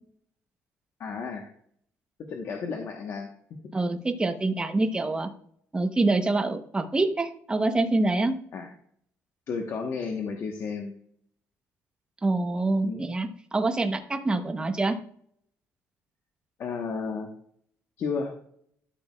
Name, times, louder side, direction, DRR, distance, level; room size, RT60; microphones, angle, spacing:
voice 1, 1.0-1.5 2.3-3.3 3.6-3.7 8.5-8.7 9.5-10.9 12.8-13.1 16.6-17.3 18.0-18.3, left 5 dB, 55° left, 2 dB, 1.2 m, -32 dB
voice 2, 3.7-5.3 5.7-8.3 12.2-14.9, right 2 dB, 15° right, 6 dB, 0.9 m, -26 dB
13.0 x 6.3 x 2.4 m, 0.63 s
cardioid pair, 130°, 6 cm